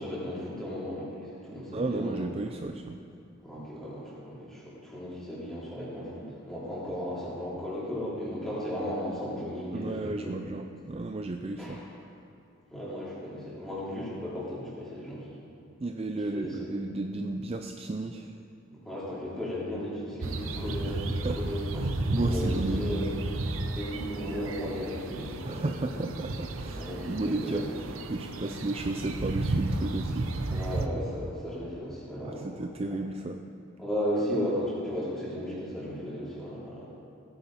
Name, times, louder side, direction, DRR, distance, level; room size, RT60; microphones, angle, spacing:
voice 1, 0.0-2.2 3.4-10.3 11.6-11.8 12.7-15.4 16.3-16.5 18.7-21.9 22.2-23.0 23.7-26.1 26.8-27.7 30.5-32.6 33.8-36.9, equal, ahead, -9 dB, 3.5 m, -35 dB
voice 2, 1.7-3.0 9.7-11.8 15.8-18.4 20.8-21.4 21.8-22.9 25.4-30.3 32.2-33.4, right 2 dB, 30° right, 5 dB, 0.4 m, -33 dB
sound 1, 20.2-30.9, right 2 dB, 75° right, 0.8 m, -33 dB
17.0 x 9.8 x 4.3 m, 2.5 s
head